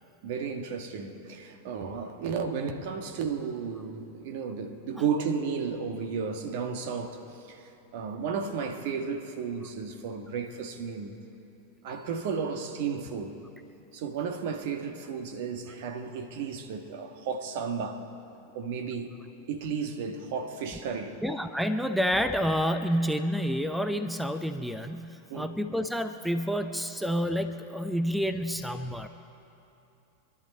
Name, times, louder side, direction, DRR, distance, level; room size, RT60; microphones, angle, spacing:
voice 1, 0.2-11.2 11.8-13.4 13.9-18.1 18.5-19.1 19.5-21.2 25.3-25.6, right 6 dB, 60° right, 1.4 m, -33 dB
voice 2, 21.2-29.1, equal, ahead, 0.7 m, -29 dB
26.0 x 11.5 x 4.2 m
hypercardioid pair, 95°, 0 cm